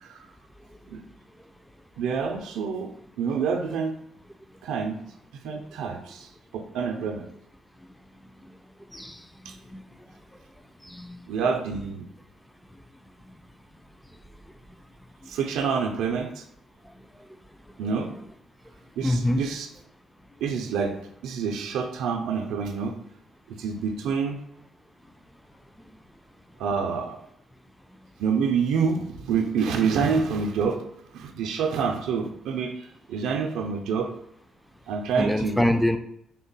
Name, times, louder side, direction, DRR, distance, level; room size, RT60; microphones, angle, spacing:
voice 1, 2.0-2.9 3.2-4.0 4.6-5.0 5.4-7.2 9.5-9.6 11.3-12.1 15.3-16.4 17.8-18.1 19.0-19.7 20.4-20.9 21.2-22.9 23.5-24.4 26.6-27.2 28.2-30.8 31.1-34.1 34.9-35.7, right 6 dB, 90° right, 0.4 m, -27 dB
voice 2, 8.9-9.8 10.9-11.2 13.3-13.4 19.0-19.4 35.2-36.0, left 1 dB, 5° left, 0.3 m, -25 dB
3.6 x 2.2 x 3.9 m
cardioid pair, 90°, 0 cm